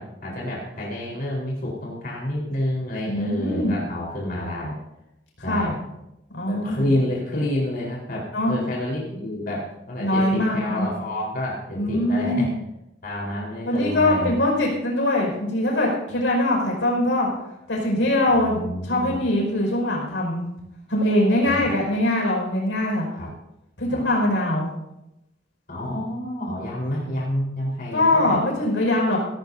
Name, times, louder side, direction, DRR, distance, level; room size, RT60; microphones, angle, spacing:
voice 1, 0.0-4.7 5.4-5.8 6.5-12.5 13.0-14.3 18.3-19.2 21.4-21.7 23.1-23.3 23.9-24.0 25.7-28.4, left 1 dB, 55° left, -4 dB, 4.3 m, -29 dB
voice 2, 3.1-3.8 5.5-5.7 6.3-6.9 8.3-8.5 10.0-10.9 11.8-12.5 13.7-17.3 17.7-20.4 20.9-23.1 23.8-24.7 27.9-29.2, left 1 dB, 90° left, -1 dB, 5.6 m, -22 dB
17.5 x 17.0 x 2.8 m, 0.87 s
head